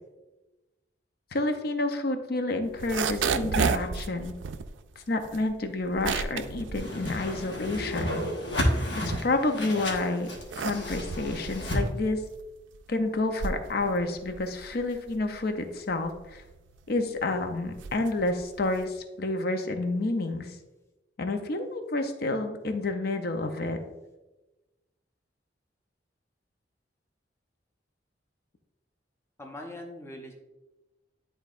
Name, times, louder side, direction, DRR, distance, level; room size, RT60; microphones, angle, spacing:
voice 1, 1.3-4.3 5.1-8.3 9.0-10.3 10.6-12.2 12.9-16.4 16.9-20.6 21.2-23.8, left 2 dB, 55° left, 6 dB, 0.6 m, -29 dB
sound 1, 2.6-7.9 8.3-9.7 10.2-19.0, right 5 dB, 85° right, 0.4 m, -34 dB
Whoosh swoosh swish, 6.8-11.8, equal, 75° left, 1.3 m, -31 dB
voice 2, 29.4-30.3, left 1 dB, 15° left, 1 dB, 0.7 m, -41 dB
10.5 x 3.9 x 2.5 m, 1.1 s
head